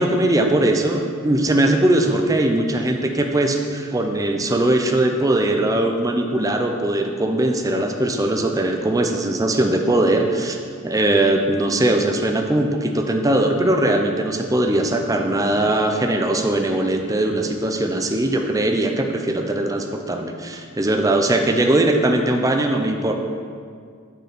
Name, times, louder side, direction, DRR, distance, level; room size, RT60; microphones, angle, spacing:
voice 1, 0.0-10.6 10.8-23.1, right 1 dB, 15° right, 3 dB, 0.5 m, -20 dB
8.1 x 4.6 x 5.9 m, 2.1 s
head